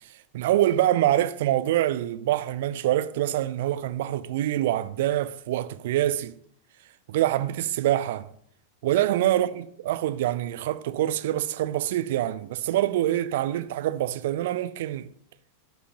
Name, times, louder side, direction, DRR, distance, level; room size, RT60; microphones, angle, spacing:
voice 1, 0.3-6.3 7.1-8.3 8.8-15.1, right 13 dB, 55° right, 0.5 m, -25 dB
15.0 x 5.6 x 3.0 m
figure-of-eight pair, 90°, 0 cm